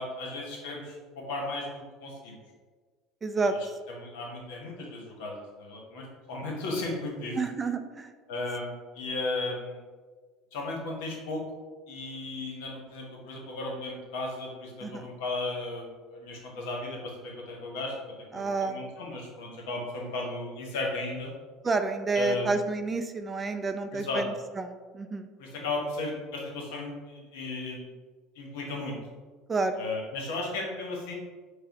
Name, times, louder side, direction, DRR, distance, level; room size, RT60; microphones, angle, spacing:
voice 1, 0.0-2.4 3.4-3.7 4.0-7.4 8.3-9.8 10.5-11.4 11.9-17.9 18.3-21.3 22.1-22.5 23.9-24.2 25.4-27.8 28.3-29.0 29.8-31.1, left 2 dB, 75° left, -1 dB, 0.9 m, -35 dB
voice 2, 3.2-3.5 7.4-8.1 14.8-15.1 18.3-18.8 21.6-25.3 29.5-29.7, right 3 dB, 25° right, 8 dB, 0.3 m, -29 dB
4.8 x 2.1 x 2.9 m, 1.4 s
hypercardioid pair, 85°, 0 cm